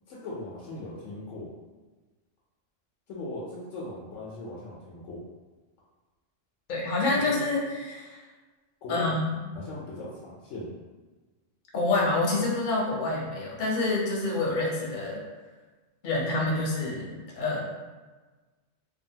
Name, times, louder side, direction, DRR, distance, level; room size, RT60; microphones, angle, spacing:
voice 1, 0.1-1.5 3.1-5.2 7.2-7.6 8.8-9.1 9.5-10.7, left 1 dB, 80° left, -5 dB, 0.9 m, -39 dB
voice 2, 6.7-8.2 8.9-9.4 11.7-15.2 16.0-17.6, left 2 dB, 50° left, -4 dB, 0.7 m, -27 dB
2.7 x 2.4 x 2.7 m, 1.3 s
omnidirectional pair, 1.3 m